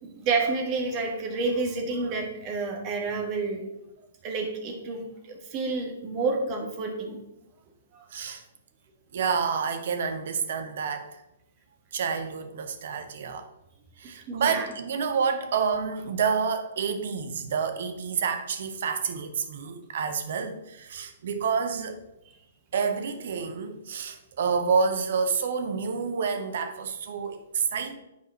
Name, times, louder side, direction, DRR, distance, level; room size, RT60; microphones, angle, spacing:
voice 1, 0.0-3.6 4.2-7.2 7.9-8.0 14.3-14.7, right 3 dB, 30° right, 1.6 m, -29 dB
voice 2, 8.1-8.4 9.1-11.2 11.9-13.5 14.0-22.0 22.7-28.0, right 6 dB, 55° right, 0.9 m, -28 dB
8.4 x 4.8 x 4.4 m
figure-of-eight pair, 115°, 0 cm